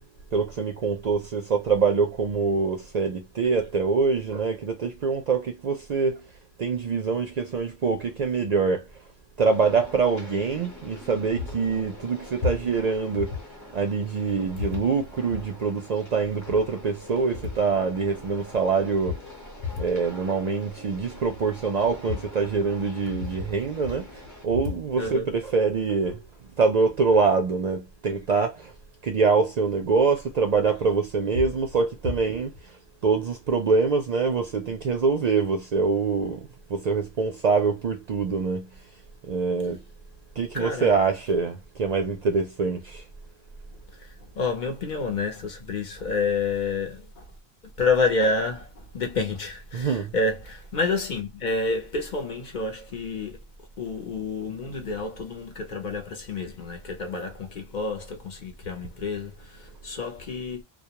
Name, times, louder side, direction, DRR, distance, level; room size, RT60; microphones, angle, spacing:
voice 1, 0.3-6.2 6.6-8.8 9.4-13.3 13.7-19.2 19.8-24.1 24.4-26.2 26.6-28.7 29.0-32.5 33.0-38.7 39.3-39.8 40.4-43.0 49.7-50.1, right 4 dB, 55° right, 0.5 m, -24 dB
sound 1, 9.4-24.4, left 2 dB, 20° left, 0.7 m, -45 dB
voice 2, 24.9-25.3 40.5-40.9 43.9-47.3 47.8-53.4 53.8-60.6, left 3 dB, 50° left, 0.7 m, -29 dB
2.3 x 2.1 x 2.8 m
omnidirectional pair, 1.0 m